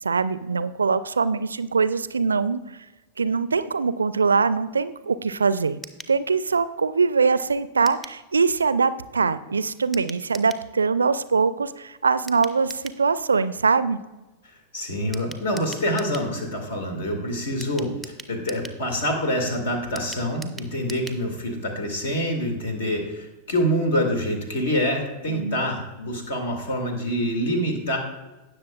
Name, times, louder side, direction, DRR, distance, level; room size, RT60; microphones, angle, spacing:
voice 1, 0.0-2.8 3.2-5.8 6.1-14.0 25.3-25.6, right 5 dB, 75° right, 15 dB, 0.4 m, -23 dB
sound 1, 5.8-6.2 7.9-8.2 9.9-10.7 12.3-13.0 15.1-16.3 17.6-18.8 20.0-21.2 21.5-21.6 21.9-22.0, right 1 dB, ahead, 0.6 m, -41 dB
voice 2, 14.7-28.0, equal, 60° left, 4 dB, 2.1 m, -26 dB
17.5 x 6.7 x 2.3 m, 1.1 s
figure-of-eight pair, 90°, 0 cm